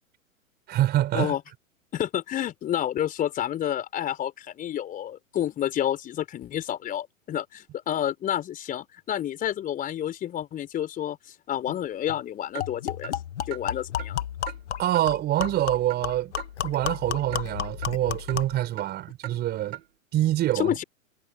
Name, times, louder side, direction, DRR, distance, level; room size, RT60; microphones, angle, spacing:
voice 1, 0.7-1.3 14.8-16.3 16.6-19.8 20.1-20.7, right 13 dB, 25° right, 5.1 m, -25 dB
voice 2, 1.9-13.2 13.5-14.2 20.5-20.8, left 11 dB, 20° left, 4.2 m, -29 dB
sound 1, 11.7-11.8 12.1-12.2 12.6-18.6, left 10 dB, 55° left, 2.0 m, -33 dB
Clock, 12.5-12.7 13.0-13.1 13.5-13.6 14.0-14.1 14.5-14.6 14.9-15.1 15.4-15.5 15.9-16.0 16.4-16.5 16.9-17.0 17.3-17.4 17.8-17.9 18.3-18.4 18.8-18.9 19.2-19.4 19.7-19.8, right 13 dB, 45° right, 3.0 m, -38 dB
figure-of-eight pair, 110°, 41 cm